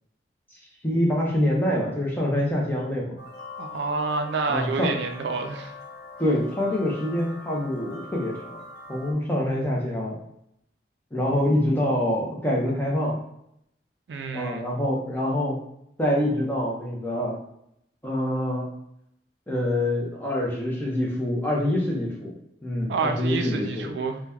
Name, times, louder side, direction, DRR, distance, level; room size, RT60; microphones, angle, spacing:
voice 1, 0.8-3.0 4.5-4.9 6.2-8.6 8.9-10.2 11.1-13.2 14.3-15.6 16.0-17.4 18.0-18.7 19.5-22.3 22.6-23.9, left 1 dB, 10° left, -3 dB, 0.7 m, -25 dB
sound 1, 3.2-9.1, left 3 dB, 65° left, 0.7 m, -42 dB
voice 2, 3.6-5.7 14.1-14.6 22.9-24.2, right 4 dB, 80° right, 6 dB, 0.4 m, -28 dB
2.8 x 2.2 x 3.5 m, 0.75 s
head